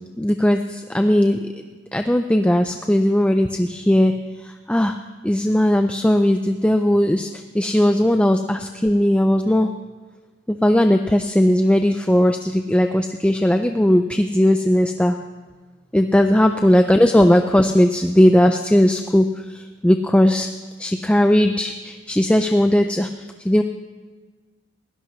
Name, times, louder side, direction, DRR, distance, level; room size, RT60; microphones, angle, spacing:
voice 1, 0.2-1.4 1.9-4.1 4.7-4.9 5.2-7.3 7.5-9.7 10.5-15.2 15.9-19.3 19.5-20.5 20.8-23.1 23.5-23.6, left 1 dB, 5° left, 6 dB, 0.4 m, -17 dB
20.5 x 16.5 x 3.1 m, 1.4 s
head